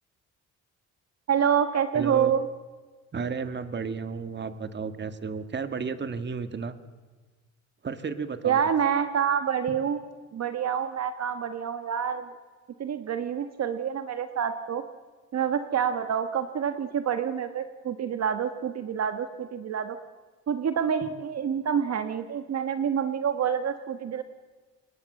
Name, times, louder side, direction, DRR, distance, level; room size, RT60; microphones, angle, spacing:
voice 1, 1.3-2.5 8.4-10.0 10.3-12.3 12.8-14.8 15.3-20.0 20.5-24.2, right 8 dB, 55° right, 9 dB, 1.6 m, -27 dB
voice 2, 1.9-2.3 3.1-6.7 7.8-8.6, right 5 dB, 35° right, 10 dB, 1.9 m, -33 dB
27.0 x 20.5 x 7.8 m, 1.4 s
cardioid pair, 90°, 30 cm